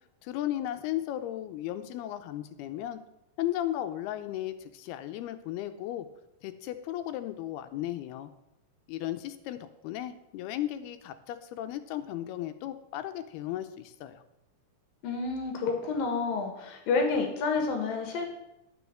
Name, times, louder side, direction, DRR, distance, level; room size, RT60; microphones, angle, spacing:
voice 1, 0.2-3.0 3.4-6.1 6.4-8.3 8.9-14.2, left 13 dB, 85° left, 10 dB, 2.7 m, -35 dB
voice 2, 15.0-18.3, left 4 dB, 65° left, 3 dB, 3.1 m, -29 dB
10.5 x 6.3 x 7.4 m, 0.87 s
omnidirectional pair, 4.6 m